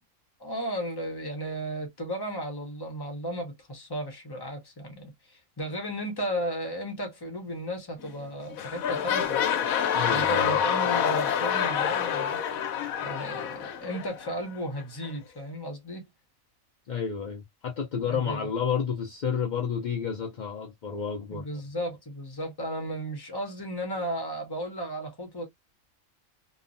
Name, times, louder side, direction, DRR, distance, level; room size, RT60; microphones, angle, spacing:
voice 1, 0.4-9.4 10.1-12.4 13.0-16.1 18.0-18.5 21.3-25.5, equal, 25° left, 0.6 m, -34 dB
sound 1, 8.0-8.3 8.5-14.4 15.0-15.1, left 8 dB, 90° left, 1.1 m, -27 dB
voice 2, 9.9-10.6 16.9-21.5, left 7 dB, 65° left, 0.4 m, -30 dB
2.9 x 2.0 x 2.4 m
omnidirectional pair, 1.4 m